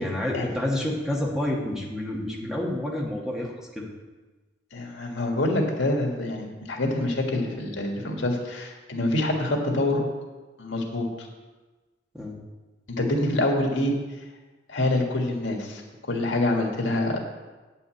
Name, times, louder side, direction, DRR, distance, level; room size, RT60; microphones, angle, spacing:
voice 1, 0.0-3.9 12.1-12.4, left 1 dB, 5° right, -3 dB, 1.6 m, -29 dB
voice 2, 4.7-10.1 10.6-11.1 13.0-13.9 14.7-17.2, left 1 dB, 85° left, 1 dB, 1.9 m, -26 dB
9.3 x 5.5 x 7.8 m, 1.2 s
head